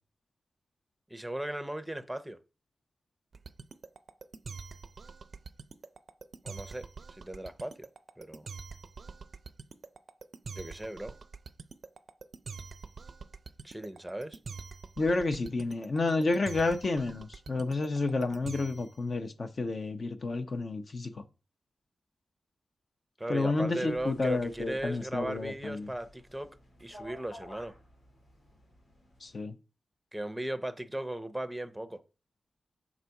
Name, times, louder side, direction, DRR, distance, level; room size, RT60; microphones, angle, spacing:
voice 1, 1.1-2.4 6.4-7.9 8.2-8.5 10.5-11.1 13.6-14.4 23.2-26.5 26.8-27.7 30.1-32.0, right 1 dB, 5° right, 0.6 m, -37 dB
sound 1, 3.3-19.0, right 5 dB, 60° right, 0.4 m, -45 dB
voice 2, 15.0-21.2 23.3-25.9 29.2-29.6, left 3 dB, 50° left, 0.7 m, -30 dB
sound 2, 23.8-29.4, left 1 dB, 85° left, 2.6 m, -53 dB
6.0 x 4.1 x 4.7 m
wide cardioid pair, 95°, 0 cm